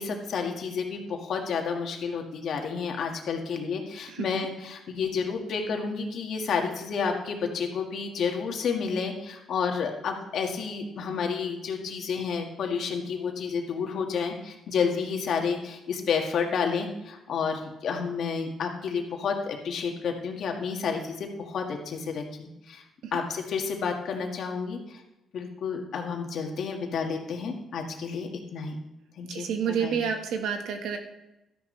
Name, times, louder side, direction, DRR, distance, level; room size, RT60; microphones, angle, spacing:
voice 1, 0.0-22.8 23.1-25.0 25.3-28.8 29.2-30.0, left 5 dB, 65° left, 2 dB, 1.9 m, -30 dB
voice 2, 29.3-31.0, right 7 dB, 85° right, 5 dB, 1.4 m, -29 dB
12.5 x 10.5 x 3.3 m, 0.95 s
cardioid pair, 90°, 0 cm